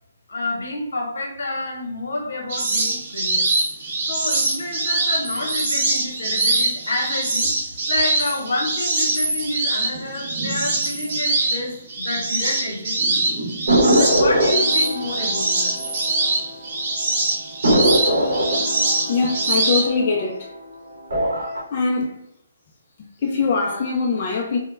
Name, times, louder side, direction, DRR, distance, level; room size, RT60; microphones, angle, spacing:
voice 1, 0.3-3.5 4.1-7.5 7.9-13.4 13.9-15.8, left 2 dB, 75° left, 0.8 m, -29 dB
sound 1, 2.5-19.9, right 2 dB, 35° right, 0.6 m, -23 dB
sound 2, 13.7-16.7 17.0-17.1 17.6-20.6 21.0-21.6, equal, 70° right, 0.8 m, -22 dB
voice 2, 19.1-20.5 21.7-22.2 23.0-24.6, left 4 dB, 30° left, 0.3 m, -22 dB
2.2 x 2.0 x 3.1 m
hypercardioid pair, 175°, 0 cm